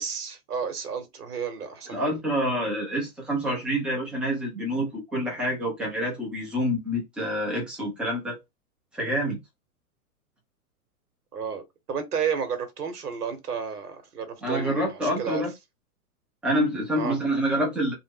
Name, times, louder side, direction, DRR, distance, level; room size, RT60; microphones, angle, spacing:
voice 1, 0.0-2.2 11.3-15.4 17.0-17.2, right 6 dB, 85° right, 0.9 m, -32 dB
voice 2, 1.9-8.4 8.9-9.4 14.4-15.5 16.4-17.9, equal, ahead, 0.4 m, -27 dB
2.5 x 2.1 x 3.4 m
hypercardioid pair, 120°, 46 cm